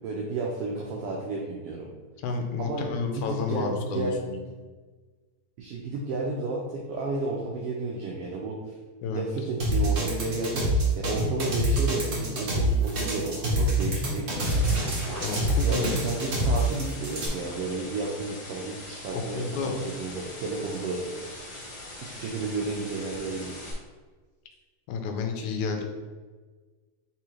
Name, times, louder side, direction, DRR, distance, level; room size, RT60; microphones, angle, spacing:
voice 1, 0.0-1.9 2.6-4.2 5.6-8.7 9.1-14.3 15.6-21.0 22.0-23.6, right 3 dB, 90° right, -2 dB, 1.3 m, -32 dB
voice 2, 2.2-4.4 9.0-9.2 15.2-15.9 19.1-19.8 24.9-25.8, left 5 dB, 85° left, 4 dB, 2.1 m, -31 dB
sound 1, 9.6-17.3, right 1 dB, 65° right, 0.8 m, -26 dB
sound 2, 13.9-23.7, left 2 dB, 55° left, 1.1 m, -42 dB
4.8 x 3.6 x 3.0 m, 1.4 s
omnidirectional pair, 3.4 m